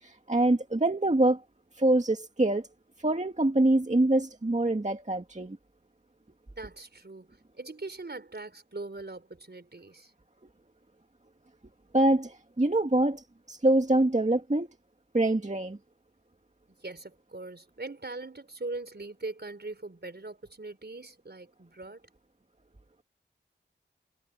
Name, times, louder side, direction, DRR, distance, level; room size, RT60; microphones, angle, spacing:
voice 1, 0.0-1.4 1.8-2.7 3.0-5.6 11.9-14.7 15.1-15.8, right 1 dB, 35° right, 1.9 m, -25 dB
voice 2, 6.6-10.1 16.8-22.0, right 2 dB, 55° right, 4.2 m, -41 dB
wide cardioid pair, 40°, 20 cm